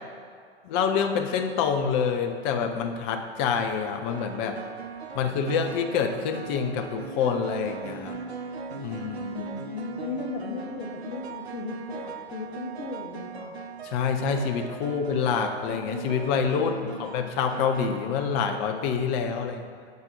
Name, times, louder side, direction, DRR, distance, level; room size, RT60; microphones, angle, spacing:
voice 1, 0.6-4.6 5.1-8.2 8.8-9.5 13.8-16.7 17.0-19.7, left 6 dB, 20° left, 5 dB, 0.4 m, -27 dB
sound 1, 2.7-2.8 4.1-18.9, right 5 dB, 80° right, 0.6 m, -39 dB
voice 2, 9.3-13.5 16.5-17.1, left 4 dB, 45° left, -1 dB, 0.8 m, -37 dB
7.2 x 4.0 x 5.2 m, 2.1 s
figure-of-eight pair, 105°, 32 cm